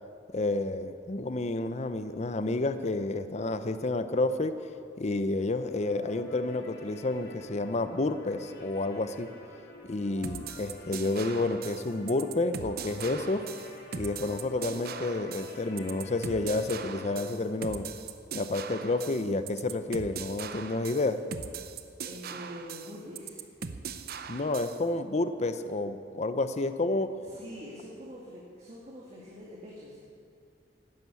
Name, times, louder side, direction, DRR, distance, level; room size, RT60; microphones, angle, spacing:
voice 1, 0.3-4.5 5.0-9.3 9.8-13.5 14.0-17.9 18.3-21.2 24.3-27.1, left 2 dB, 40° left, 10 dB, 0.6 m, -30 dB
sound 1, 5.6-17.3, left 1 dB, 60° left, 2.8 m, -49 dB
sound 2, 10.2-24.8, right 6 dB, 55° right, 0.7 m, -40 dB
voice 2, 22.0-23.5 27.2-30.0, equal, 35° right, -5 dB, 2.2 m, -45 dB
12.5 x 11.0 x 8.3 m, 2.3 s
head